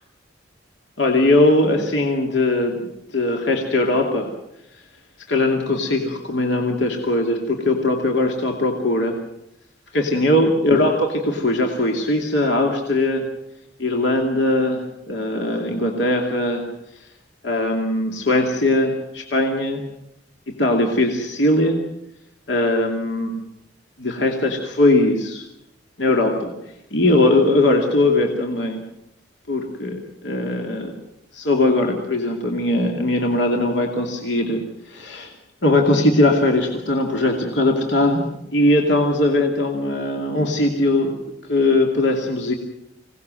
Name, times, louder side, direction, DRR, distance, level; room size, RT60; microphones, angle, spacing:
voice 1, 1.0-4.3 5.3-9.2 9.9-13.3 13.8-16.6 17.4-19.9 20.5-21.8 22.5-23.4 24.0-25.4 26.0-26.5 26.9-28.8 29.5-30.9 31.3-34.6 34.9-35.3 35.6-38.2 38.5-41.1 41.5-42.5, left 2 dB, 65° left, 2 dB, 2.7 m, -20 dB
26.5 x 18.5 x 7.7 m, 0.81 s
head